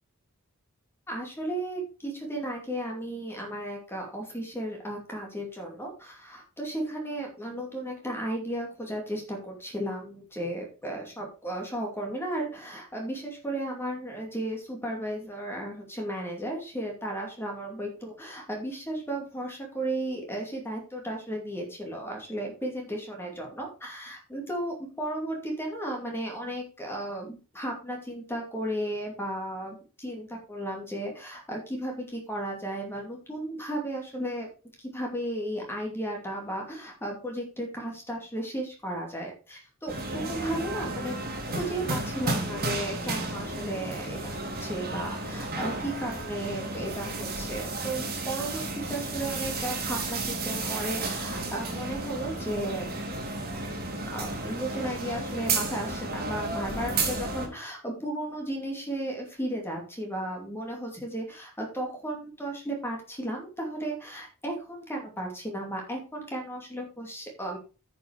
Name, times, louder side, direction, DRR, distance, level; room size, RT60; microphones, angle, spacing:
voice 1, 1.1-34.5 34.8-41.2 41.6-52.9 54.1-67.6, right 1 dB, 10° left, 0 dB, 2.5 m, -34 dB
sound 1, 39.9-57.5, right 2 dB, 45° right, 2.6 m, -33 dB
9.8 x 5.9 x 5.0 m, 0.33 s
head